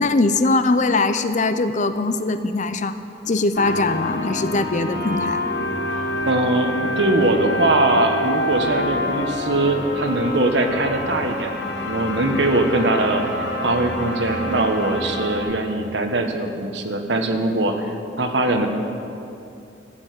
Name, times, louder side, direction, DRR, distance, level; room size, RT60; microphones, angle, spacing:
voice 1, 0.0-3.0 3.2-5.4, left 3 dB, 40° left, 10 dB, 0.7 m, -21 dB
sound 1, 3.5-15.4, left 1 dB, 65° left, 3.2 m, -27 dB
voice 2, 6.3-11.5 11.8-13.2 13.6-18.7, right 2 dB, 65° right, 5 dB, 1.4 m, -21 dB
15.0 x 9.0 x 9.2 m, 2.6 s
head